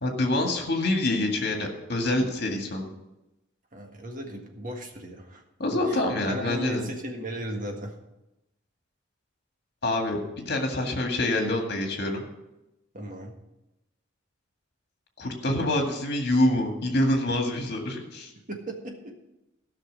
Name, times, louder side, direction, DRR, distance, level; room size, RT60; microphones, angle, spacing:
voice 1, 0.0-2.9 5.6-6.9 9.8-12.3 15.2-18.3, left 1 dB, 50° left, 2 dB, 2.0 m, -26 dB
voice 2, 3.7-5.4 5.9-6.0 6.3-8.0 12.9-13.3 18.5-19.1, equal, 40° right, 2 dB, 1.7 m, -36 dB
13.5 x 6.1 x 7.5 m, 0.95 s
head